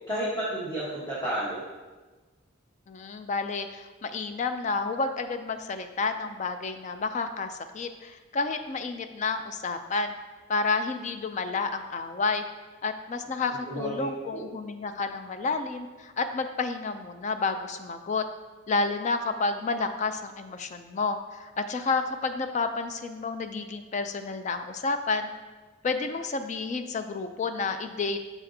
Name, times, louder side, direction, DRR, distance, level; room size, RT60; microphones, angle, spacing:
voice 1, 0.1-1.6 13.7-14.4, right 1 dB, 20° left, -8 dB, 1.1 m, -31 dB
voice 2, 2.9-10.1 10.5-12.4 12.8-18.2 18.7-25.3 25.8-28.2, left 4 dB, 35° left, 8 dB, 0.3 m, -30 dB
6.7 x 5.9 x 2.7 m, 1.3 s
head